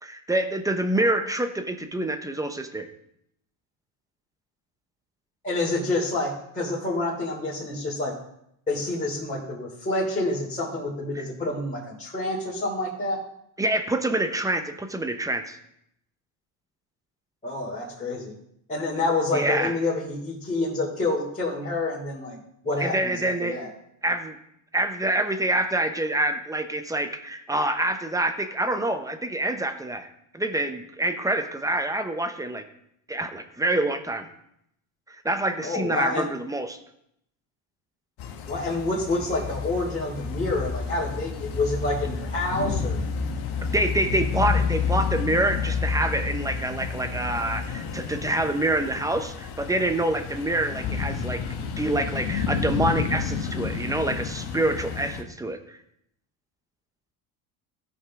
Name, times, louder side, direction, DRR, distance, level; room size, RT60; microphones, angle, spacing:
voice 1, 0.0-2.9 11.1-11.2 13.6-15.6 19.3-19.7 22.8-23.6 24.0-24.4 24.7-30.1 30.3-32.6 33.1-34.3 35.1-36.8 43.7-55.8, right 1 dB, 5° right, 8 dB, 0.9 m, -26 dB
voice 2, 5.4-8.1 8.7-13.2 17.4-18.3 18.7-23.7 35.6-36.3 38.5-43.0, left 2 dB, 15° left, -8 dB, 3.2 m, -28 dB
sound 1, 38.2-55.2, left 6 dB, 60° left, 1.3 m, -30 dB
16.0 x 5.4 x 3.7 m, 0.74 s
supercardioid pair, 105°, 45 cm